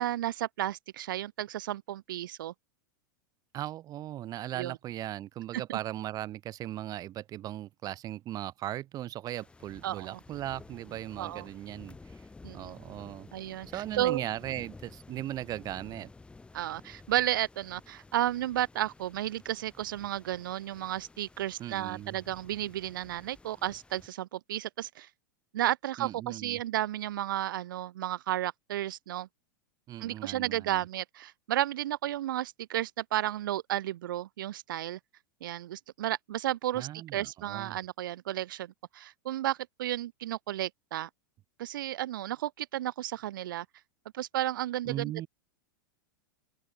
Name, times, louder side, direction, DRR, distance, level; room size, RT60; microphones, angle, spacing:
voice 1, 0.0-2.5 4.6-4.8 5.7-5.8 9.8-10.2 11.2-11.5 12.4-12.8 13.3-14.2 16.5-25.1 25.5-29.3 30.0-35.0 35.4-41.1 41.6-43.6 44.1-45.3, right 13 dB, 75° right, 1.5 m, -33 dB
voice 2, 3.5-12.2 12.5-13.3 13.7-16.1 21.6-22.2 26.0-26.6 29.9-30.8 36.7-37.8 44.9-45.3, right 13 dB, 35° right, 2.3 m, -38 dB
sound 1, 9.3-24.1, left 3 dB, 10° left, 2.6 m, -53 dB
open air
hypercardioid pair, 125°, 11 cm